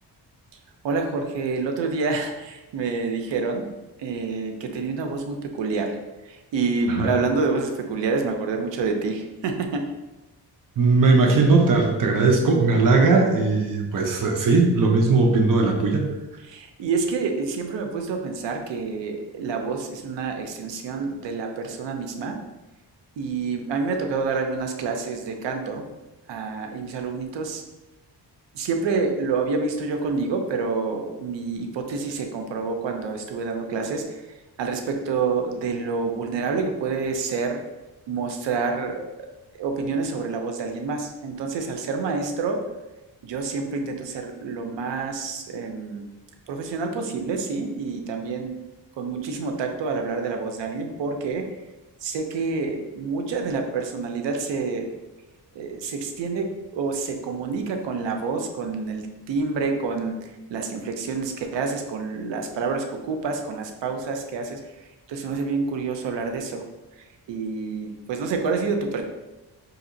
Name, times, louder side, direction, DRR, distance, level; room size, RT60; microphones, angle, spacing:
voice 1, 0.8-3.7 4.0-9.8 16.4-22.4 23.2-25.8 26.3-27.6 28.5-37.6 38.1-39.3 39.6-42.7 43.2-46.0 46.5-48.5 49.0-51.5 52.0-54.9 55.5-66.6 67.0-69.0, right 4 dB, 90° right, 4 dB, 0.6 m, -28 dB
voice 2, 10.8-16.0, right 3 dB, 50° right, 2 dB, 0.7 m, -18 dB
4.1 x 2.7 x 2.6 m, 1.1 s
cardioid pair, 70°, 43 cm